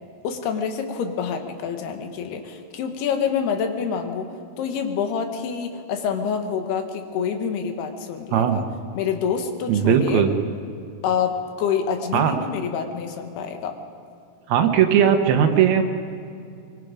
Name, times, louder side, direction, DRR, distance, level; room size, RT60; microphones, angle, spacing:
voice 1, 0.2-4.3 4.6-8.6 8.9-10.2 11.0-13.7, left 7 dB, 80° left, 5 dB, 3.4 m, -27 dB
voice 2, 8.3-8.6 9.7-10.3 12.1-12.3 14.5-15.8, right 8 dB, 75° right, 6 dB, 3.0 m, -18 dB
24.0 x 23.5 x 5.1 m, 2.5 s
omnidirectional pair, 4.5 m